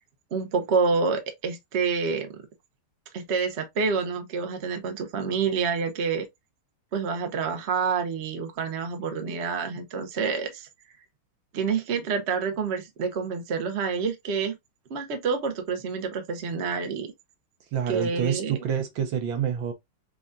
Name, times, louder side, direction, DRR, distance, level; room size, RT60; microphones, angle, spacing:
voice 1, 0.3-2.4 3.1-6.2 6.9-10.7 11.5-14.6 14.9-17.1 17.9-18.6, right 5 dB, 50° right, 0.8 m, -28 dB
voice 2, 17.7-19.7, right 8 dB, 75° right, 1.5 m, -27 dB
5.7 x 2.4 x 2.6 m
omnidirectional pair, 2.3 m